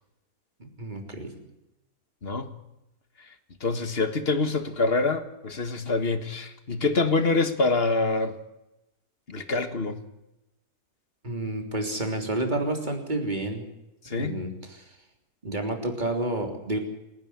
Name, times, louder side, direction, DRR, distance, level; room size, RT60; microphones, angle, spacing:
voice 1, 0.6-1.3 11.2-13.6 14.1-14.9 15.4-16.8, right 2 dB, 30° right, 3.5 m, -30 dB
voice 2, 2.2-2.5 3.6-8.3 9.3-10.0 14.1-14.4, left 3 dB, 40° left, 1.8 m, -25 dB
28.0 x 10.5 x 9.8 m
omnidirectional pair, 1.7 m